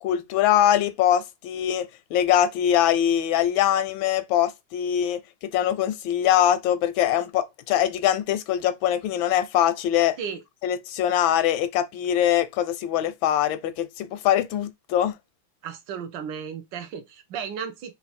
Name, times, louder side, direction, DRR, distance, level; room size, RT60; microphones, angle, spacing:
voice 1, 0.0-10.2 10.6-15.1, left 11 dB, 85° left, 1.4 m, -23 dB
voice 2, 15.6-17.9, right 7 dB, 75° right, 1.4 m, -34 dB
3.8 x 2.3 x 4.2 m
omnidirectional pair, 2.1 m